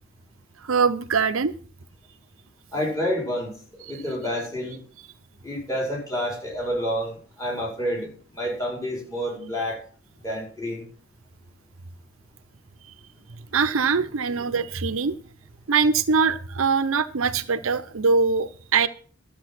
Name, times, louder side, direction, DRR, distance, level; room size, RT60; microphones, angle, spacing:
voice 1, 0.7-1.5 13.5-15.1 15.7-18.9, right 5 dB, 80° right, 12 dB, 0.7 m, -22 dB
voice 2, 2.7-4.8 5.4-9.8 10.2-10.9, equal, 15° left, -3 dB, 5.1 m, -29 dB
12.0 x 7.4 x 6.1 m, 0.43 s
head